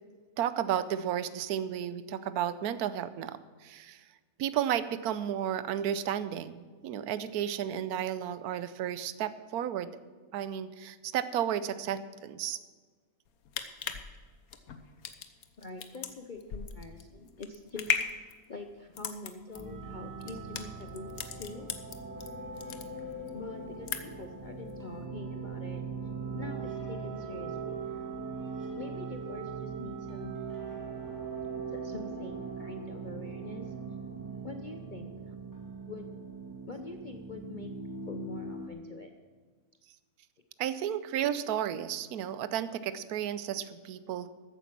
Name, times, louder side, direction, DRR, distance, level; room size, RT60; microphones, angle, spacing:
voice 1, 0.4-4.0 4.4-9.9 10.3-12.6 40.6-44.3, right 10 dB, 80° right, 14 dB, 1.2 m, -33 dB
sound 1, 13.3-22.3 22.6-23.3 23.6-24.3 24.7-24.8, left 7 dB, 70° left, 1.4 m, -37 dB
voice 2, 15.6-17.9 18.5-21.7 23.3-25.8 26.3-27.7 28.8-30.4 31.6-33.7 34.4-35.4 35.9-36.1 36.7-37.7 38.1-39.1, left 3 dB, 40° left, 5 dB, 0.8 m, -44 dB
sound 2, 19.5-38.7, right 4 dB, 15° right, 1.8 m, -40 dB
14.0 x 9.3 x 6.0 m, 1.5 s
omnidirectional pair, 1.6 m